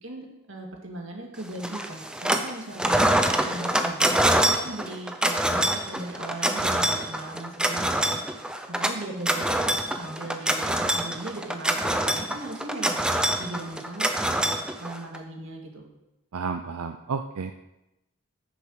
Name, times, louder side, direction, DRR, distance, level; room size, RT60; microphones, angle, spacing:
voice 1, 0.0-13.0 13.4-15.9, right 2 dB, 55° right, 1 dB, 2.1 m, -38 dB
sound 1, 1.6-2.5 2.8-15.2, right 1 dB, 5° right, 0.6 m, -25 dB
voice 2, 16.3-17.5, right 5 dB, 90° right, 7 dB, 0.5 m, -31 dB
10.0 x 7.0 x 6.5 m, 0.92 s
head